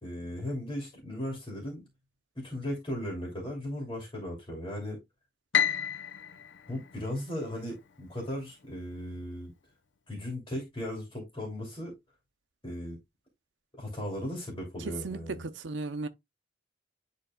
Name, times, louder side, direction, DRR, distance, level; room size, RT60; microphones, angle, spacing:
voice 1, 0.0-1.9 2.3-5.0 6.7-9.5 10.1-12.0 12.6-13.0 13.7-15.4, left 1 dB, 25° left, 2.8 m, -37 dB
Piano, 5.5-7.8, left 8 dB, 80° left, 0.7 m, -31 dB
voice 2, 14.8-16.1, right 3 dB, 80° right, 0.7 m, -36 dB
10.5 x 4.0 x 2.2 m
head